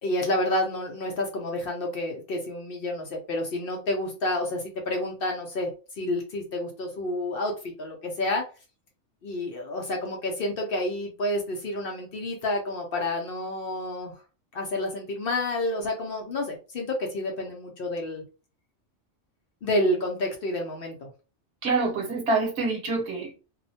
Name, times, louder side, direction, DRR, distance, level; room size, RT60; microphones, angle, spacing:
voice 1, 0.0-8.4 9.2-14.2 14.5-18.2 19.6-21.1, left 1 dB, 60° left, 0.7 m, -29 dB
voice 2, 21.6-23.4, right 3 dB, 70° right, 1.0 m, -26 dB
2.4 x 2.1 x 2.6 m
omnidirectional pair, 1.3 m